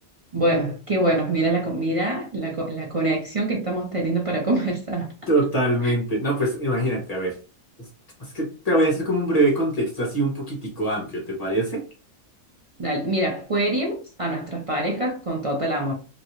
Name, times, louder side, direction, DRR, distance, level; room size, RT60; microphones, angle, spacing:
voice 1, 0.3-5.1 5.8-5.9 12.8-15.9, right 1 dB, 50° right, 0.4 m, -25 dB
voice 2, 5.3-7.4 8.2-11.8, right 1 dB, 30° left, 1.2 m, -23 dB
3.0 x 2.7 x 2.9 m
omnidirectional pair, 1.5 m